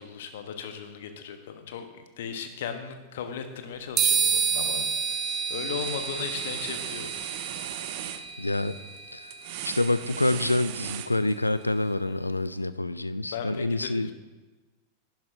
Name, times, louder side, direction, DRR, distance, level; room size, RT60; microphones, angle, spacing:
voice 1, 0.0-1.9 2.2-5.2 5.5-7.1 13.3-14.1, left 7 dB, 55° left, 7 dB, 0.9 m, -37 dB
sound 1, 4.0-11.6, right 6 dB, 25° right, 0.9 m, -31 dB
sound 2, 4.5-4.8 5.1-11.6, right 12 dB, 50° right, 0.5 m, -38 dB
voice 2, 8.4-8.8 9.1-9.3 9.6-14.1, left 2 dB, 85° left, 15 dB, 0.3 m, -27 dB
11.0 x 10.5 x 2.6 m, 1.2 s
figure-of-eight pair, 90°, 0 cm